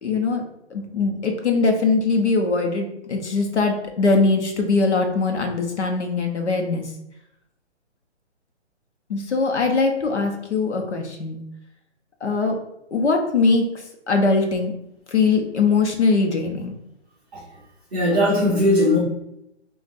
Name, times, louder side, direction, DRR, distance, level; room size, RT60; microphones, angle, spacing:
voice 1, 0.0-6.9 9.1-11.4 12.2-12.6 12.9-13.7 14.1-14.7 15.1-16.7, left 4 dB, 70° left, 4 dB, 1.1 m, -21 dB
voice 2, 17.9-19.0, left 1 dB, 10° right, -10 dB, 0.4 m, -18 dB
7.0 x 2.6 x 2.6 m, 0.81 s
figure-of-eight pair, 140°, 35 cm